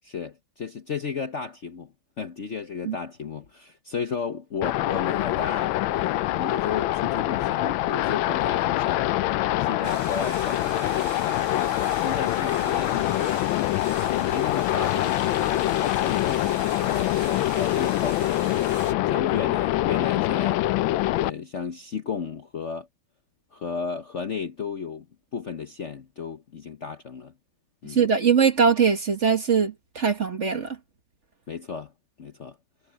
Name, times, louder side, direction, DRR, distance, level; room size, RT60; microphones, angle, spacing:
voice 1, 0.0-9.1 9.6-13.5 14.0-18.7 19.1-20.6 21.2-22.9 23.5-25.1 25.3-27.3 27.8-28.0 31.5-31.9 32.2-32.6, left 5 dB, 45° left, 1.0 m, -34 dB
sound 1, 4.6-21.3, left 15 dB, 80° left, 1.3 m, -25 dB
sound 2, 9.8-18.9, right 3 dB, 65° right, 4.5 m, -41 dB
voice 2, 27.9-30.8, right 6 dB, 40° right, 1.6 m, -21 dB
omnidirectional pair, 2.2 m